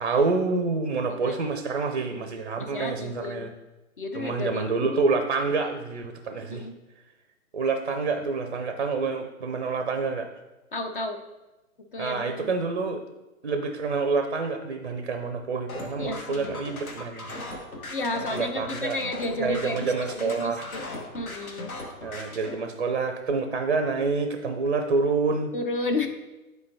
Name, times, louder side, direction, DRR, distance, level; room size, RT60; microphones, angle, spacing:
voice 1, 0.0-3.5 4.1-6.7 7.5-10.3 12.0-13.0 13.4-17.3 18.3-19.0 19.4-20.7 22.0-25.5, right 4 dB, 40° right, 6 dB, 0.5 m, -27 dB
voice 2, 1.1-1.6 2.6-3.5 4.0-5.0 6.5-6.7 10.7-11.2 11.9-12.5 16.0-16.6 17.9-21.7 25.5-26.1, left 2 dB, 40° left, 5 dB, 0.5 m, -32 dB
sound 1, 15.7-22.5, left 2 dB, 75° left, 1.3 m, -38 dB
9.9 x 4.7 x 2.7 m, 1.1 s
figure-of-eight pair, 125°, 44 cm